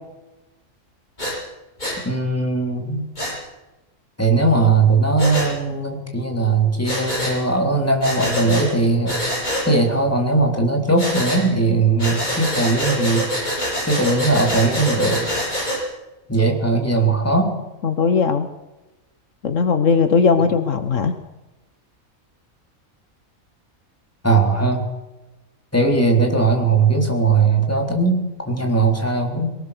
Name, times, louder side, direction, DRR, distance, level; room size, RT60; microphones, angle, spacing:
Breathing, 1.2-1.4 1.8-2.0 3.2-3.3 5.2-5.5 6.8-7.4 8.0-8.7 9.1-9.7 11.0-11.4 12.0-15.8, equal, 30° left, 8.0 m, -25 dB
voice 1, 2.0-3.1 4.2-9.2 9.7-13.3 13.9-15.3 16.3-17.6 24.2-24.9 25.7-29.6, right 3 dB, 10° left, 2 dB, 3.8 m, -19 dB
voice 2, 17.8-18.5 19.4-21.2, left 5 dB, 65° left, 9 dB, 1.5 m, -18 dB
23.0 x 18.5 x 6.8 m, 1.0 s
omnidirectional pair, 1.4 m